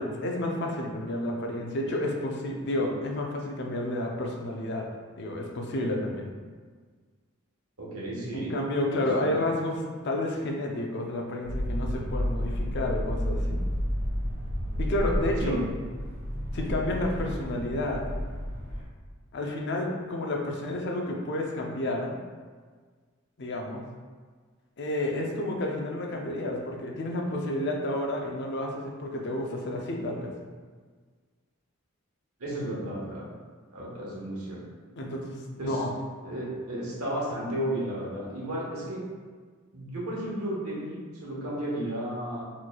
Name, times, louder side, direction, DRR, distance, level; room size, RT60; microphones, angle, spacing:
voice 1, 0.0-4.9 5.2-6.3 8.3-13.6 14.8-15.6 16.5-18.0 19.3-22.2 23.4-23.8 24.8-30.3 35.0-35.9, left 1 dB, 50° left, 1 dB, 0.5 m, -30 dB
voice 2, 7.8-8.6 8.9-9.3 15.4-15.6 32.4-33.2 33.7-34.6 35.6-35.8 36.2-39.0 39.7-42.4, right 1 dB, 85° right, -5 dB, 1.1 m, -33 dB
sound 1, 11.4-18.8, equal, 30° right, 1.4 m, -31 dB
4.2 x 3.0 x 2.2 m, 1.5 s
head